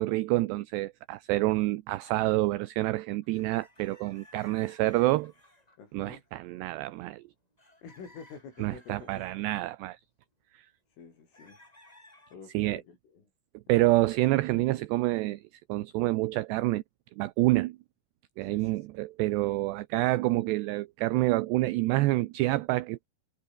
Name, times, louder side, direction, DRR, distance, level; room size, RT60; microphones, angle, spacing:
voice 1, 0.0-5.3 5.9-7.2 8.6-10.0 12.5-12.8 13.7-15.4 15.7-16.8 17.2-17.8 18.4-23.1, right 18 dB, 80° right, 2.5 m, -27 dB
sound 1, 3.2-5.8 6.2-6.7 7.1-7.2 7.6-9.4 11.3-12.3, left 1 dB, 10° left, 3.3 m, -58 dB
voice 2, 5.8-6.3 7.8-9.3 10.9-13.3 13.7-13.8 18.4-18.9, left 5 dB, 80° left, 9.2 m, -49 dB
omnidirectional pair, 5.7 m